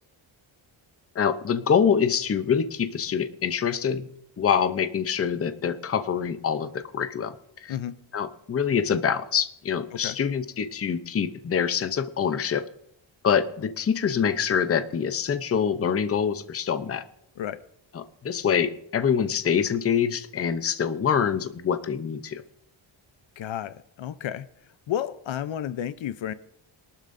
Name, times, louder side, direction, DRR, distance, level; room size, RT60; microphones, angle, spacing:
voice 1, 1.2-4.1 4.4-7.3 7.6-7.7 8.1-12.6 13.2-17.0 17.9-22.4, left 7 dB, 30° left, 10 dB, 0.6 m, -25 dB
voice 2, 23.4-24.5 24.9-26.3, left 10 dB, 75° left, 14 dB, 0.7 m, -32 dB
22.5 x 12.0 x 2.6 m, 0.72 s
wide cardioid pair, 165°, 47 cm